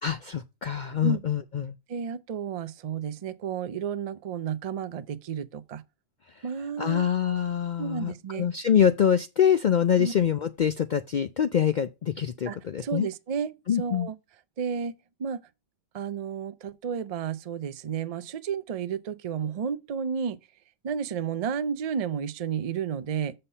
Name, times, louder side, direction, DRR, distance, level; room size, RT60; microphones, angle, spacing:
voice 1, 0.0-1.7 6.8-13.1 13.7-14.1, left 8 dB, 75° left, 0.4 m, -25 dB
voice 2, 1.9-5.8 6.4-7.1 7.8-8.5 10.0-10.1 12.5-12.6 12.8-14.1 14.6-14.9 15.2-15.4 15.9-20.4 20.8-23.3, right 7 dB, 60° right, 0.3 m, -32 dB
6.7 x 5.6 x 5.5 m
omnidirectional pair, 1.4 m